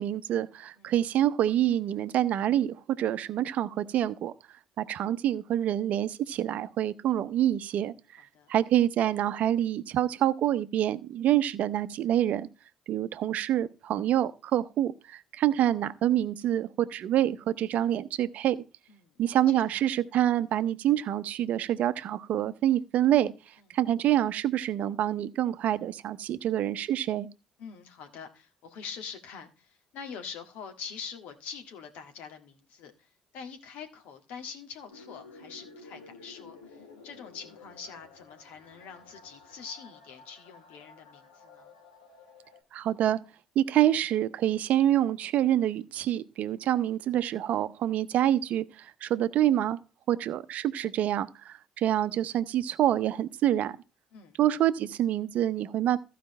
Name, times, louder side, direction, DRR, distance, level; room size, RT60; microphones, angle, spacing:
voice 1, 0.0-4.3 4.8-7.9 8.5-12.5 12.9-18.6 19.2-23.3 23.7-27.3 42.7-43.2 43.6-49.8 50.1-53.7 54.4-56.0, right 12 dB, 60° right, 0.7 m, -26 dB
voice 2, 18.9-19.8 27.6-32.9 33.3-41.7 46.4-46.5 54.1-54.6, left 6 dB, 65° left, 1.8 m, -44 dB
sound 1, 34.9-42.6, left 3 dB, 90° left, 1.7 m, -52 dB
14.5 x 5.1 x 4.3 m
hypercardioid pair, 55°, 3 cm